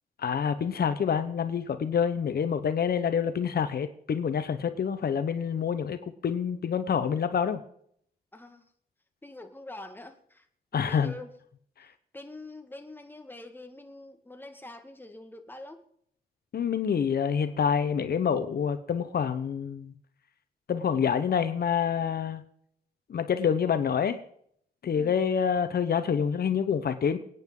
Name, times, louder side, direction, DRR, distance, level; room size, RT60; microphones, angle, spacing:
voice 1, 0.2-7.6 10.7-11.1 16.5-19.9 20.7-22.4 23.1-24.2 24.8-27.2, left 7 dB, 70° left, 10 dB, 1.0 m, -27 dB
voice 2, 8.3-8.6 9.2-10.5 10.7-11.3 11.8-11.9 12.1-15.8 24.9-25.2, left 2 dB, 10° left, 6 dB, 1.7 m, -45 dB
26.5 x 9.3 x 3.8 m, 0.67 s
cardioid pair, 90°, 17 cm